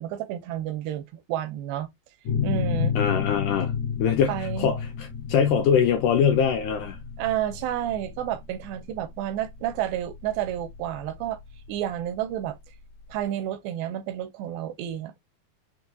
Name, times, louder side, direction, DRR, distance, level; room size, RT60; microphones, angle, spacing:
voice 1, 0.0-1.9 2.4-2.9 4.3-4.8 7.2-11.4 11.7-12.6 13.1-15.2, right 11 dB, 80° right, 2.4 m, -30 dB
sound 1, 2.3-11.7, left 7 dB, 65° left, 2.1 m, -31 dB
voice 2, 3.0-3.7 4.0-7.0, left 7 dB, 80° left, 1.9 m, -23 dB
5.9 x 2.7 x 2.2 m
omnidirectional pair, 4.2 m